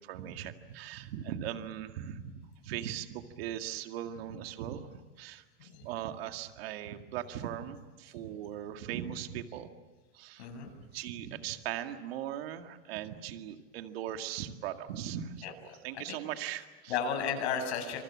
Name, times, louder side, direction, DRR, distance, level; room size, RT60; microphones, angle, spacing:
voice 1, 0.0-9.7 10.1-10.5 10.8-17.0, right 10 dB, 55° right, 6 dB, 2.1 m, -39 dB
voice 2, 10.4-10.7 15.4-16.2 16.9-18.0, left 7 dB, 65° left, 5 dB, 7.9 m, -34 dB
28.0 x 27.5 x 7.5 m, 1.2 s
supercardioid pair, 175°, 35 cm